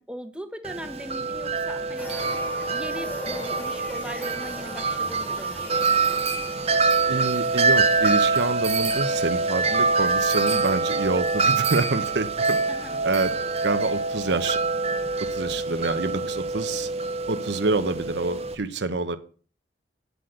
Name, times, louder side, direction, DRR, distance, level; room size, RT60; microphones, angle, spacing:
voice 1, 0.0-2.1 2.7-6.0 12.7-13.1, equal, 5° right, 9 dB, 1.1 m, -39 dB
Wind chime, 0.6-18.5, right 4 dB, 35° right, 0.9 m, -25 dB
sound 1, 2.0-11.1 11.5-11.6, left 1 dB, 10° left, 2.4 m, -42 dB
voice 2, 7.1-12.6 13.0-13.3 13.6-14.6 15.3-16.9 17.3-19.2, right 3 dB, 70° right, 10 dB, 0.8 m, -27 dB
8.3 x 7.8 x 7.8 m, 0.42 s
head